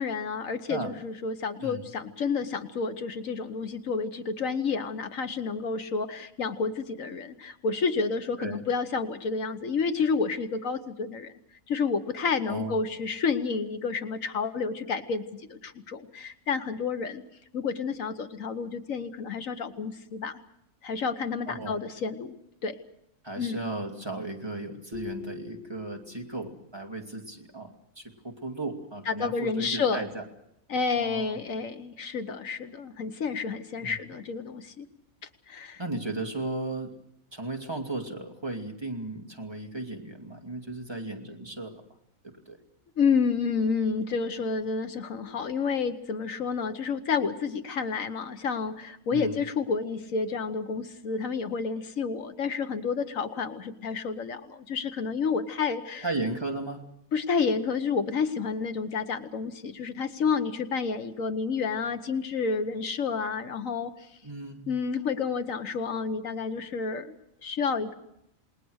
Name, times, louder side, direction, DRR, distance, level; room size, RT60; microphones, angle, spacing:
voice 1, 0.0-11.3 11.7-15.2 15.5-17.2 17.5-20.4 20.8-22.3 22.6-22.8 23.4-23.6 29.1-30.0 30.7-34.9 35.5-35.8 43.0-56.0 57.1-64.1 64.7-67.1 67.4-67.9, left 5 dB, 70° left, 9 dB, 1.5 m, -30 dB
voice 2, 12.5-12.8 21.5-21.8 23.2-30.2 31.0-31.4 33.8-33.9 35.8-36.9 37.3-41.8 42.5-42.6 49.1-49.3 56.0-56.8 64.2-64.7, right 2 dB, 20° right, 2 dB, 2.5 m, -35 dB
sound 1, 24.9-26.6, left 8 dB, 40° right, 3.4 m, -43 dB
28.5 x 20.0 x 6.4 m, 0.78 s
omnidirectional pair, 1.4 m